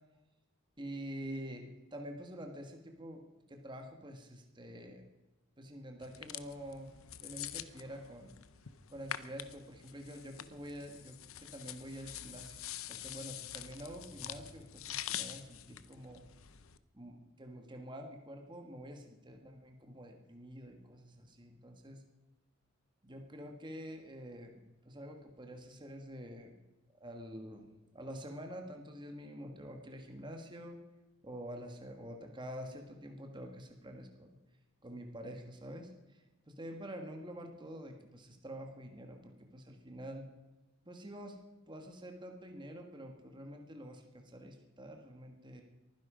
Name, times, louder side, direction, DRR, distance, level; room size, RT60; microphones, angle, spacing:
voice 1, 0.8-1.6 1.9-3.2 3.5-5.0 5.6-6.9 7.2-8.3 8.9-12.6 12.9-16.2 16.9-22.0 23.0-26.5 27.0-27.7 27.9-30.8 31.2-34.3 34.8-40.3 40.8-41.4 41.7-45.6, equal, 20° right, 3 dB, 1.6 m, -47 dB
sound 1, 6.0-16.8, left 11 dB, 70° left, 0.8 m, -46 dB
23.5 x 10.5 x 5.0 m, 1.1 s
head